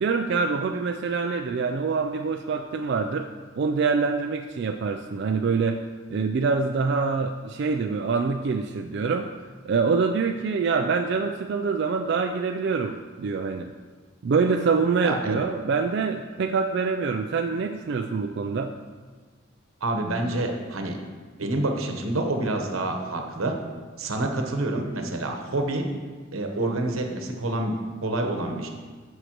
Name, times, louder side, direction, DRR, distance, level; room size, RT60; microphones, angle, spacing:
voice 1, 0.0-3.3 3.6-5.8 6.1-9.3 9.6-13.7 14.2-18.7, right 5 dB, 55° right, 4 dB, 0.3 m, -25 dB
voice 2, 15.0-15.4 19.8-21.0 21.4-23.5 24.0-25.9 26.3-27.7 28.0-28.7, right 2 dB, 90° right, 3 dB, 1.1 m, -27 dB
11.0 x 6.5 x 3.0 m, 1.5 s
head